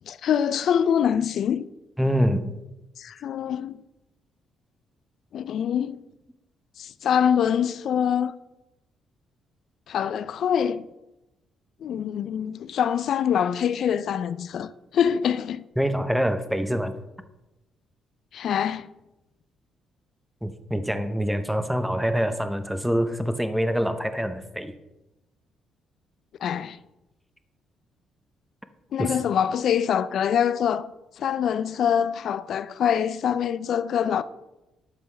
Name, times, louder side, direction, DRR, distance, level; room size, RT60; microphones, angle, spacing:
voice 1, 0.1-1.6 3.0-3.8 5.3-6.0 6.8-8.3 9.9-10.9 11.8-15.6 18.3-18.9 26.4-26.8 28.9-30.9 31.2-34.2, left 8 dB, 65° left, 0.3 m, -24 dB
voice 2, 2.0-2.5 15.8-17.0 20.4-24.7 29.0-29.1, equal, 5° right, 0.7 m, -25 dB
12.0 x 5.5 x 3.3 m
cardioid pair, 90°, 0 cm